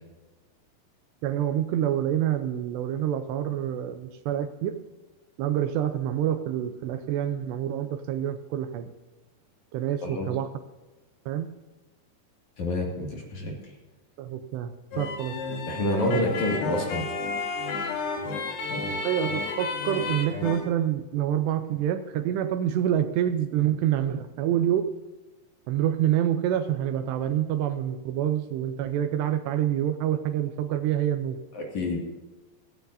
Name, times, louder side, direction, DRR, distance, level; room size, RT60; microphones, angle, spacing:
voice 1, 1.2-4.8 5.4-8.9 9.7-10.5 11.3-11.5 14.2-15.4 16.1-16.2 19.0-24.8 25.7-31.4, right 11 dB, 80° right, 8 dB, 2.8 m, -27 dB
voice 2, 12.6-13.5 15.7-17.1 18.2-18.4 18.7-19.0 31.5-32.0, left 1 dB, 45° left, -1 dB, 3.2 m, -28 dB
sound 1, 14.9-20.6, left 3 dB, 70° left, 3.9 m, -32 dB
16.5 x 15.0 x 2.7 m, 1.2 s
omnidirectional pair, 5.1 m